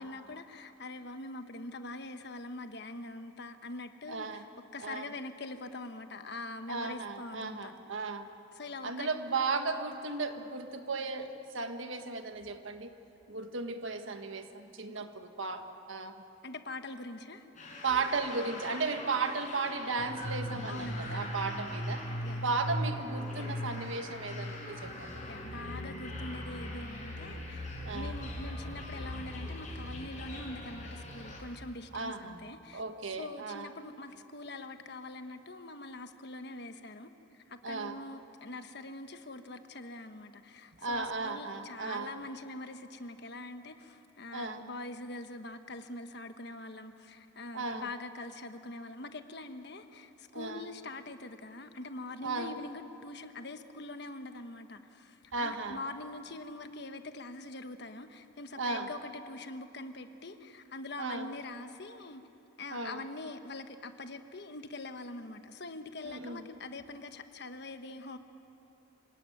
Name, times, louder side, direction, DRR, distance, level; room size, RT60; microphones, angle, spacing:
voice 1, 0.0-4.4 4.7-7.7 8.5-9.1 14.9-15.0 16.4-17.5 20.7-21.3 22.2-22.4 25.3-32.8 33.1-37.1 37.5-62.2 62.6-68.2, left 2 dB, 60° left, 8 dB, 1.3 m, -44 dB
voice 2, 4.1-4.4 4.8-5.1 6.7-8.3 8.8-13.0 13.3-16.2 17.8-22.1 22.4-25.1 27.8-28.2 31.9-32.4 32.7-33.7 37.6-38.0 40.8-42.2 44.3-44.7 47.5-47.9 50.3-50.7 52.2-52.6 55.3-55.8 58.5-58.9 61.0-61.3 62.7-63.1 66.0-66.5, right 4 dB, 85° right, 7 dB, 1.6 m, -35 dB
sound 1, 17.6-31.4, equal, 40° left, 5.6 m, -39 dB
26.5 x 18.0 x 9.4 m, 2.9 s
head